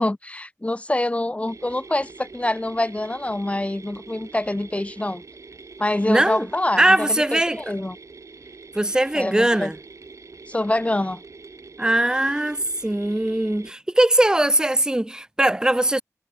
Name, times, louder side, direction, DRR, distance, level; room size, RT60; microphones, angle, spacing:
voice 1, 0.0-5.2 5.8-8.0 9.1-9.7 10.5-11.2, left 1 dB, 20° left, 1.2 m, -25 dB
sound 1, 1.5-13.7, right 4 dB, 60° right, 1.3 m, -44 dB
voice 2, 6.1-6.5 6.8-7.6 8.7-9.8 11.8-16.0, right 1 dB, 10° right, 0.6 m, -20 dB
wide cardioid pair, 70°, 6 cm